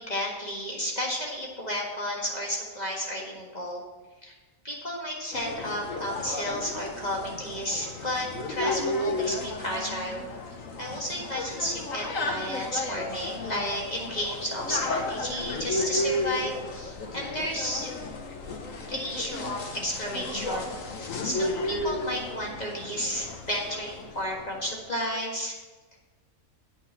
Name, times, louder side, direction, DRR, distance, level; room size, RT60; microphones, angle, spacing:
voice 1, 0.0-3.8 4.2-4.3 4.6-10.2 10.8-17.9 18.9-20.7 21.2-25.5, equal, 30° left, -2 dB, 1.9 m, -32 dB
sound 1, 5.3-24.6, left 2 dB, 75° left, 1.5 m, -33 dB
8.7 x 6.0 x 7.2 m, 1.2 s
omnidirectional pair, 1.4 m